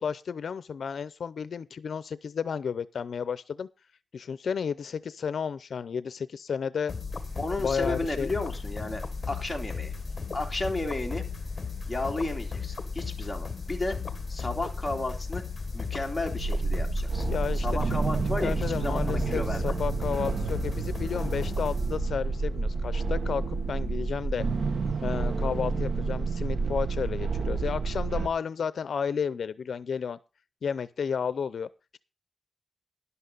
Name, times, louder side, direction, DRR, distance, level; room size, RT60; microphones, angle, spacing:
voice 1, 0.0-3.7 4.1-6.9 7.6-8.3 17.3-18.0 18.4-24.5 25.0-30.2 30.6-32.0, left 6 dB, 75° left, 15 dB, 0.6 m, -32 dB
sound 1, 6.9-22.3, left 4 dB, 35° left, 1.6 m, -35 dB
sound 2, 7.1-25.9, equal, 50° right, 4.9 m, -58 dB
voice 2, 7.4-9.0 9.3-9.9 10.3-11.2 11.9-14.0 14.3-15.4 15.7-17.3 17.5-19.7, left 2 dB, 10° left, 0 dB, 2.8 m, -33 dB
sound 3, 16.4-28.3, right 4 dB, 75° right, 1.3 m, -29 dB
12.5 x 11.0 x 4.0 m, 0.29 s
wide cardioid pair, 140°, 0 cm